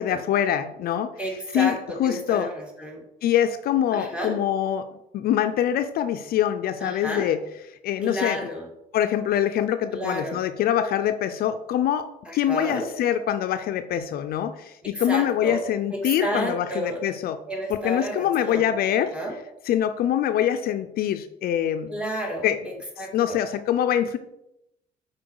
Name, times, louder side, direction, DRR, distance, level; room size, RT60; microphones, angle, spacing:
voice 1, 0.0-1.1 1.5-2.5 3.2-4.9 5.1-7.4 7.8-8.4 8.9-12.1 12.3-17.4 17.7-19.1 19.7-21.9 22.4-22.6 23.1-24.2, left 10 dB, 65° left, 9 dB, 0.5 m, -24 dB
voice 2, 1.2-1.8 2.0-3.0 3.9-4.4 6.8-7.3 8.0-8.7 9.9-10.4 12.3-12.9 14.8-15.6 15.9-17.0 17.5-18.7 19.1-19.4 21.9-22.5 23.0-23.4, equal, 5° right, 0 dB, 2.0 m, -31 dB
6.2 x 4.4 x 4.6 m, 0.85 s
cardioid pair, 110°, 17 cm